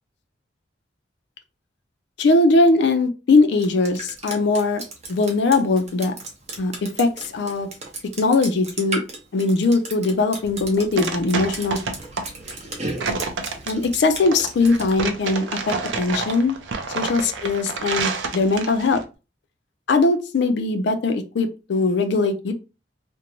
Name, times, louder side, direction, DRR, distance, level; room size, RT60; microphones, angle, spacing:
voice 1, 2.2-4.8 5.1-6.1 6.6-7.7 8.2-9.0 9.3-11.8 13.7-16.6 16.9-19.0 19.9-22.5, left 3 dB, 70° left, 7 dB, 0.4 m, -20 dB
Drip, 3.6-14.9, right 2 dB, 35° right, 0.7 m, -35 dB
sound 1, 10.4-19.0, right 4 dB, 85° right, 0.5 m, -29 dB
2.5 x 2.1 x 2.9 m, 0.31 s
head